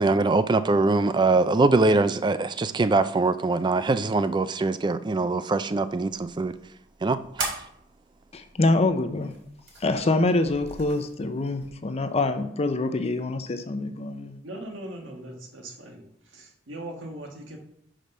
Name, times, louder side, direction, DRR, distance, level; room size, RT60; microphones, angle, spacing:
voice 1, 0.0-6.5 7.0-7.5, right 3 dB, 25° right, 0.4 m, -23 dB
sound 1, 5.9-11.7, right 3 dB, 65° right, 2.6 m, -40 dB
voice 2, 8.3-9.3 9.8-14.4, left 2 dB, 35° left, 0.5 m, -25 dB
voice 3, 14.4-17.6, right 1 dB, 90° right, 1.5 m, -40 dB
5.8 x 5.1 x 5.4 m
head